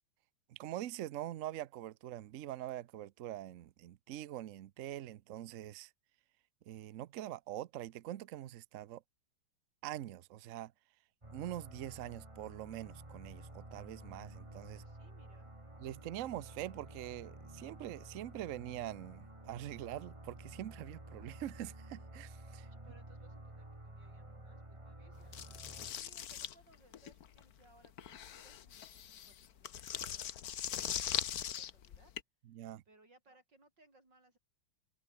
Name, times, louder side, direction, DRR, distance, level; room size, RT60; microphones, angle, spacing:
voice 1, 0.5-5.9 6.7-9.0 9.8-10.7 11.3-14.8 15.8-22.7 32.5-32.8, right 13 dB, 80° right, 0.7 m, -44 dB
sound 1, 11.2-25.9, right 1 dB, 15° right, 3.1 m, -52 dB
voice 2, 14.7-15.5 22.7-25.4 25.8-32.1 32.9-34.4, right 2 dB, 60° right, 8.6 m, -67 dB
sound 2, 25.3-32.2, left 9 dB, 55° left, 1.4 m, -41 dB
omnidirectional pair, 2.2 m